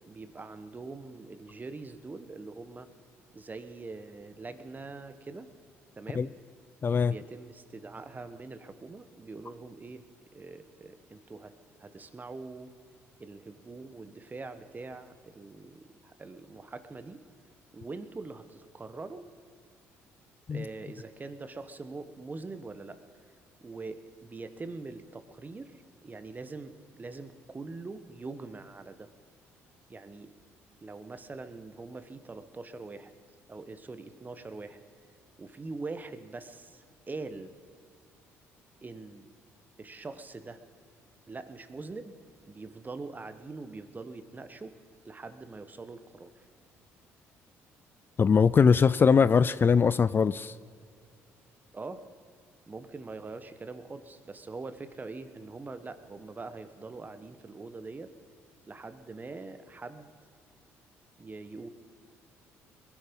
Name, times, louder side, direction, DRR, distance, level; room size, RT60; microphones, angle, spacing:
voice 1, 0.1-2.9 3.3-5.5 6.0-6.3 7.1-10.0 10.3-11.5 11.8-12.7 13.2-17.2 17.7-19.3 20.5-23.0 23.6-29.1 29.9-30.3 30.8-33.1 33.5-34.8 35.4-37.5 38.8-39.3 39.8-40.6 41.3-42.1 42.5-44.7 45.0-46.4 51.7-52.0 52.7-58.1 58.7-60.1 61.2-61.7, right 3 dB, 30° right, 11 dB, 1.3 m, -43 dB
voice 2, 6.8-7.1 20.5-20.6 48.2-50.5, left 6 dB, 35° left, 17 dB, 0.4 m, -21 dB
20.5 x 11.5 x 5.4 m, 2.3 s
supercardioid pair, 65°, 6 cm